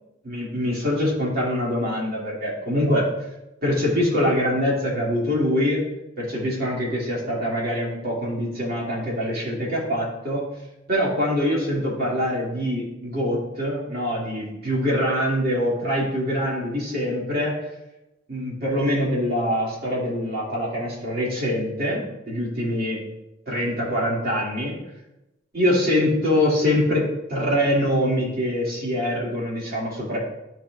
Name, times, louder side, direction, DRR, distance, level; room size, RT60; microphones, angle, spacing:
voice 1, 0.2-3.1 3.6-5.8 6.2-10.5 10.9-17.5 18.3-23.0 23.5-24.7 25.5-30.2, left 1 dB, 50° right, -5 dB, 2.4 m, -24 dB
12.0 x 4.5 x 2.5 m, 0.94 s
head